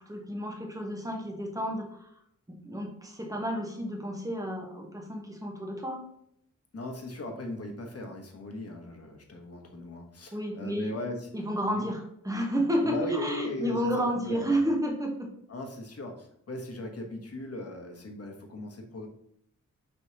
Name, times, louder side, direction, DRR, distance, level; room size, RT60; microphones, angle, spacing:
voice 1, 0.1-2.1 2.5-6.0 10.3-10.9 11.3-15.3, equal, 10° right, 2 dB, 1.0 m, -31 dB
voice 2, 6.7-11.3 11.7-11.9 12.8-14.6 15.5-19.1, left 1 dB, 50° left, 3 dB, 1.0 m, -38 dB
5.4 x 3.0 x 2.8 m, 0.71 s
cardioid pair, 55°, 32 cm